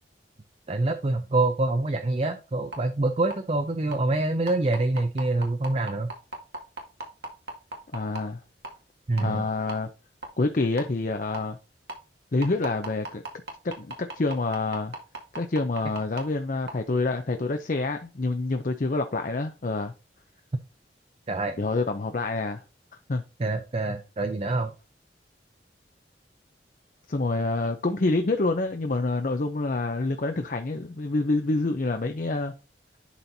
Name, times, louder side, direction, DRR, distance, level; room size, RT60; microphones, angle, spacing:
voice 1, 0.7-6.1 9.1-9.5 21.3-21.6 23.4-24.7, right 2 dB, 35° right, 0.6 m, -26 dB
sound 1, 2.7-2.8 3.3-3.4 3.9-4.0 4.5-8.2 8.6-8.8 9.2-9.3 9.7-9.8 10.2-10.3 10.8-10.9 11.3-11.4 11.9-12.0 12.4-16.2 16.7-16.8, right 2 dB, 65° right, 1.9 m, -35 dB
voice 2, 7.9-8.4 9.2-9.9 10.4-11.6 12.3-13.2 13.8-14.9 15.3-19.9 21.6-22.6 23.1-23.2 27.1-32.5, left 3 dB, 45° left, 0.6 m, -27 dB
11.5 x 4.4 x 2.7 m
head